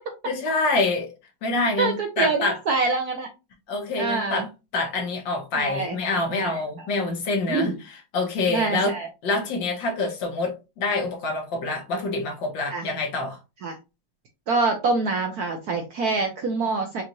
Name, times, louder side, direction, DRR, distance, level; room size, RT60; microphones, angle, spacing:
voice 1, 0.3-1.1 1.4-2.6 3.7-4.5 4.7-7.7 8.1-8.9 9.2-13.4, left 3 dB, 65° left, 1.8 m, -26 dB
voice 2, 1.8-3.3 4.0-4.5 5.5-6.0 6.3-6.6 7.5-7.8 8.5-9.1 12.7-12.9 13.6-13.8 14.5-17.0, right 3 dB, 65° right, 0.9 m, -25 dB
5.4 x 2.5 x 2.9 m
omnidirectional pair, 2.2 m